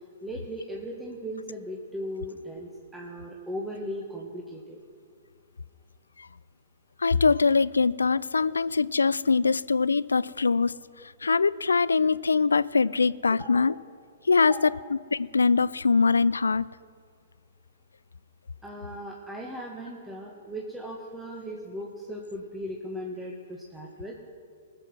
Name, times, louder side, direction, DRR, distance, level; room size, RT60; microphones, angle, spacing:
voice 1, 0.2-4.8 13.4-13.6 14.4-14.7 18.6-24.2, equal, 5° right, -2 dB, 1.5 m, -37 dB
voice 2, 7.0-10.7 11.2-13.7 14.3-14.5 15.1-16.6, left 4 dB, 85° left, 19 dB, 0.3 m, -22 dB
20.5 x 7.7 x 6.1 m, 2.1 s
figure-of-eight pair, 115°, 0 cm